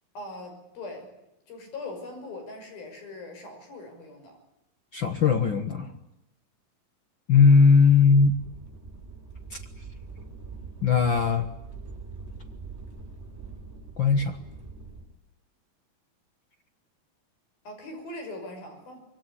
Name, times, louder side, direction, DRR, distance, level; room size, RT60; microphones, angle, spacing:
voice 1, 0.1-1.1 1.5-4.4 17.6-19.0, left 2 dB, 85° left, 5 dB, 7.9 m, -40 dB
voice 2, 4.9-5.9 7.3-8.4 9.5-9.6 10.8-11.5 14.0-14.4, left 5 dB, 55° left, 7 dB, 1.3 m, -19 dB
sound 1, 8.2-15.0, right 4 dB, 15° right, 5.8 m, -43 dB
25.0 x 23.0 x 10.0 m, 0.89 s
omnidirectional pair, 4.1 m